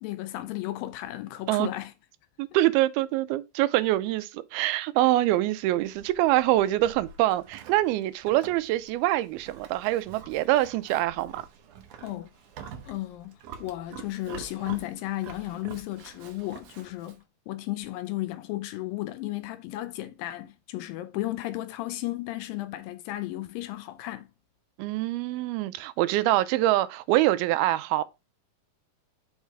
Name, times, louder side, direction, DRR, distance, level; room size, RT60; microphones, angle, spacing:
voice 1, 0.0-1.9 12.0-12.3 12.8-17.2 17.5-24.3, left 16 dB, 80° left, 2.1 m, -34 dB
voice 2, 2.4-11.4 24.8-28.0, right 15 dB, 85° right, 2.5 m, -25 dB
Livestock farm animals working animals, 5.5-17.2, right 7 dB, 70° right, 2.2 m, -47 dB
6.4 x 4.0 x 4.6 m
omnidirectional pair, 4.3 m